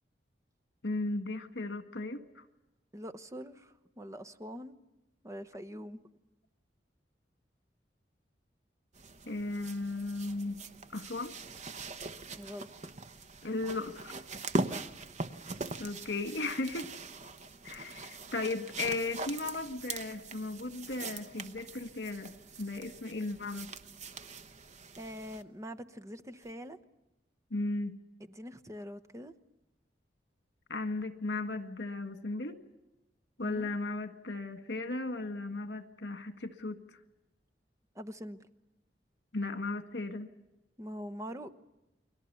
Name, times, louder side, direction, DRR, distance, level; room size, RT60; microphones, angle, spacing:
voice 1, 0.8-2.4 9.3-10.6 10.9-11.4 13.4-14.2 15.8-16.9 17.6-23.7 27.5-28.0 30.7-32.6 33.4-37.0 39.3-40.3, left 2 dB, 75° left, 9 dB, 1.8 m, -36 dB
voice 2, 2.9-4.7 5.2-6.0 12.4-12.7 14.7-14.9 25.0-26.8 28.3-29.3 33.4-33.7 37.9-38.4 40.8-41.5, equal, 20° right, 8 dB, 1.0 m, -43 dB
sound 1, 8.9-25.4 26.4-26.5, right 3 dB, 40° right, 1.1 m, -42 dB
30.0 x 22.0 x 7.0 m, 0.96 s
head